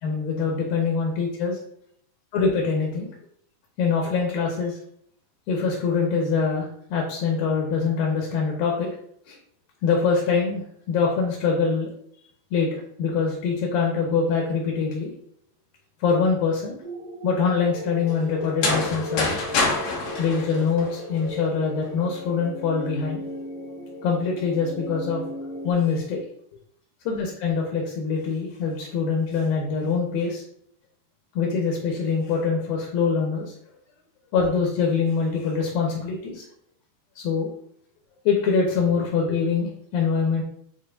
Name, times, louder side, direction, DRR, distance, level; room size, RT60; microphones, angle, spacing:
voice 1, 0.0-1.6 2.3-3.1 3.8-4.8 5.5-8.9 9.3-9.4 9.8-11.9 12.5-15.1 16.0-16.8 17.2-19.4 20.2-23.2 24.0-25.2 25.6-26.2 27.1-30.4 31.4-33.5 34.3-36.5 37.2-37.5 38.3-40.4, left 5 dB, 70° left, 0 dB, 2.6 m, -24 dB
sound 1, 16.8-25.7, left 1 dB, 40° right, 1.7 m, -37 dB
sound 2, 18.4-21.3, left 3 dB, 90° left, 1.3 m, -26 dB
8.8 x 4.3 x 2.6 m, 0.68 s
omnidirectional pair, 4.6 m